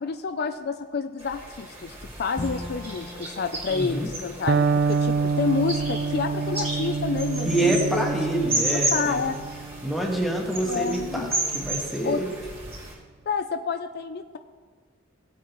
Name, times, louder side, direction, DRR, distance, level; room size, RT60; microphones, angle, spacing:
voice 1, 0.0-8.1 8.4-9.4 10.6-11.3 12.0-12.2 13.3-14.4, left 5 dB, 55° left, 8 dB, 0.4 m, -29 dB
sound 1, 1.2-12.9, right 2 dB, 30° right, 3.1 m, -33 dB
Bowed string instrument, 2.4-5.5, left 1 dB, 20° left, 2.0 m, -40 dB
voice 2, 3.7-4.1 7.4-9.3 9.8-11.3 11.5-12.3, right 1 dB, ahead, -1 dB, 1.5 m, -26 dB
Electric guitar, 4.5-12.3, right 4 dB, 50° right, 0.3 m, -28 dB
17.0 x 8.4 x 3.1 m, 1.5 s
head